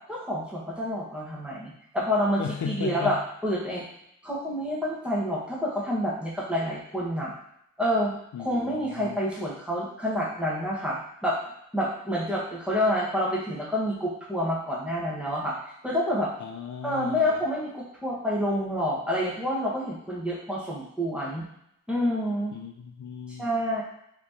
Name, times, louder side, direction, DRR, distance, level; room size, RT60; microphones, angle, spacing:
voice 1, 0.1-3.8 4.2-7.3 7.8-11.4 11.7-15.6 15.8-16.3 16.8-21.4 21.9-22.6 23.4-23.8, equal, 5° right, -5 dB, 1.3 m, -28 dB
voice 2, 2.4-3.2 8.3-9.2 16.4-17.4 22.5-23.5, left 6 dB, 65° left, 2 dB, 0.5 m, -36 dB
4.3 x 3.0 x 2.7 m, 0.76 s
wide cardioid pair, 80°, 32 cm